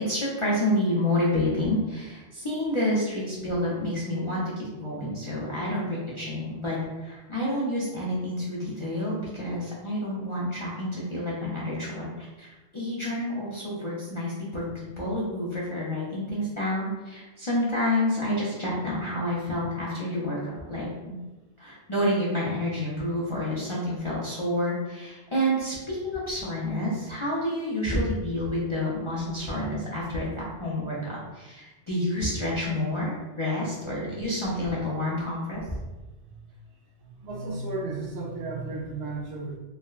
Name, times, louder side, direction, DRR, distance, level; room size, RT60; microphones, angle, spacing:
voice 1, 0.0-20.4 20.7-21.2 21.6-30.3 30.6-35.8, left 1 dB, 40° left, -7 dB, 0.5 m, -29 dB
voice 2, 37.0-39.6, right 3 dB, 70° right, -1 dB, 0.8 m, -34 dB
3.4 x 2.2 x 2.3 m, 1.1 s
omnidirectional pair, 1.2 m